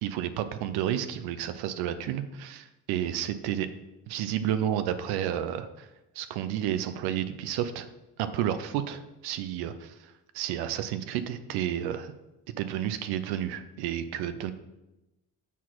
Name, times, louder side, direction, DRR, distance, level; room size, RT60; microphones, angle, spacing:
voice 1, 0.0-3.7 4.1-5.9 6.1-7.9 8.2-12.1 12.6-14.5, right 10 dB, 80° right, 11 dB, 0.7 m, -31 dB
7.2 x 4.1 x 6.0 m, 0.98 s
hypercardioid pair, 50°, 38 cm